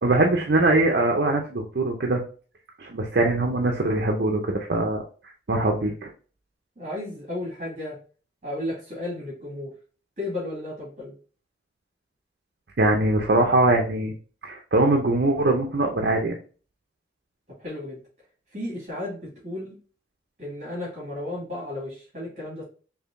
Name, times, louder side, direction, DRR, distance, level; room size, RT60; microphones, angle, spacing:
voice 1, 0.0-2.2 2.8-5.0 5.5-6.1 12.8-14.1 14.4-16.4, right 2 dB, 65° right, 1 dB, 0.6 m, -22 dB
voice 2, 6.8-8.0 8.4-9.7 10.2-11.1 17.5-18.0 18.5-19.7 20.4-22.6, left 1 dB, 40° right, -6 dB, 2.0 m, -33 dB
4.7 x 2.8 x 2.5 m, 0.39 s
head